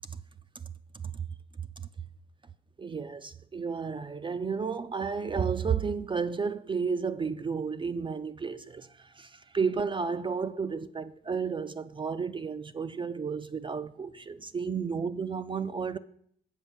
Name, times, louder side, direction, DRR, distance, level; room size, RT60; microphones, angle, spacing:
voice 1, 2.8-16.0, right 5 dB, 25° right, 0.4 m, -32 dB
7.3 x 5.5 x 7.1 m
cardioid pair, 90°, 20 cm